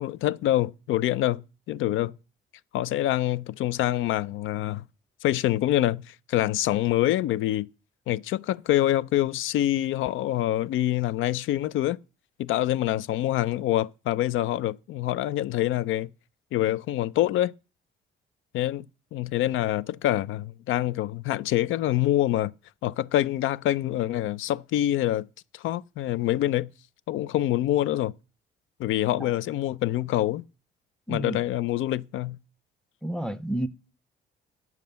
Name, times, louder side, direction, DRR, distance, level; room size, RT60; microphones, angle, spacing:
voice 1, 0.0-2.1 2.7-4.8 5.2-7.7 8.1-12.0 12.4-16.1 16.5-17.5 18.5-18.9 19.1-22.5 22.8-25.3 25.5-26.7 27.1-28.1 28.8-30.4 31.1-32.4, left 14 dB, 85° left, 0.5 m, -26 dB
voice 2, 31.1-31.4 33.0-33.7, right 1 dB, 5° left, 0.8 m, -30 dB
9.3 x 7.4 x 6.8 m
cardioid pair, 90°, 20 cm